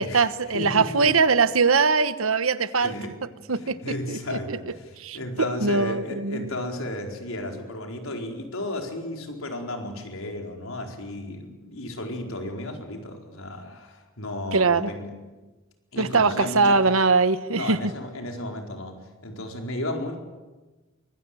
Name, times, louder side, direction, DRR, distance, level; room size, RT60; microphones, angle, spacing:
voice 1, 0.0-2.9 3.5-3.8 4.1-4.6 5.0-5.2 5.6-6.5 14.5-14.9 16.0-17.8, right 4 dB, 80° right, 13 dB, 1.2 m, -21 dB
voice 2, 0.5-1.1 2.8-3.2 3.5-15.2 15.9-16.8 17.5-20.2, left 1 dB, 80° left, 3 dB, 4.5 m, -34 dB
24.5 x 21.5 x 9.2 m, 1.2 s
head